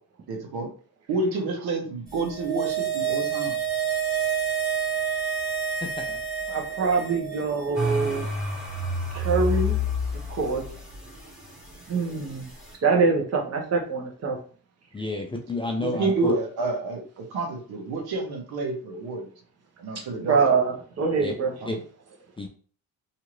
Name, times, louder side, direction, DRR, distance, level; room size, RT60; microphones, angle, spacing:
voice 1, 0.3-0.7 1.1-3.6 15.8-19.3 19.8-20.4 21.6-21.8, right 3 dB, 75° right, 2 dB, 0.9 m, -29 dB
sound 1, 2.2-7.6 7.9-8.0, right 8 dB, 20° right, 1.5 m, -28 dB
voice 2, 5.8-6.2 14.9-16.3 21.2-21.3 21.7-21.8 22.4-22.5, left 2 dB, 15° left, 2 dB, 0.4 m, -30 dB
voice 3, 6.5-8.3 9.1-9.8 10.4-10.6 11.9-12.5 12.7-14.4 20.2-21.6, right 4 dB, 40° right, 1 dB, 0.9 m, -24 dB
sound 2, 7.7-12.7, left 2 dB, ahead, 1.0 m, -29 dB
2.7 x 2.5 x 3.0 m, 0.43 s
cardioid pair, 100°, 37 cm